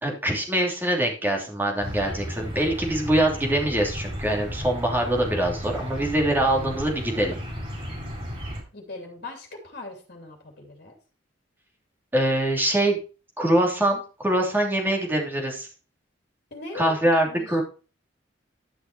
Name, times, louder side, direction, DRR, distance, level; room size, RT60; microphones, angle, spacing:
voice 1, 0.0-7.4 12.1-13.0 13.4-15.7 16.7-17.6, right 1 dB, 10° right, 1 dB, 3.0 m, -24 dB
sound 1, 1.8-8.6, equal, 30° right, 5.3 m, -34 dB
voice 2, 8.7-10.9 16.5-16.9 17.2-17.6, left 2 dB, 55° left, 2 dB, 2.8 m, -40 dB
11.5 x 6.3 x 4.5 m, 0.34 s
head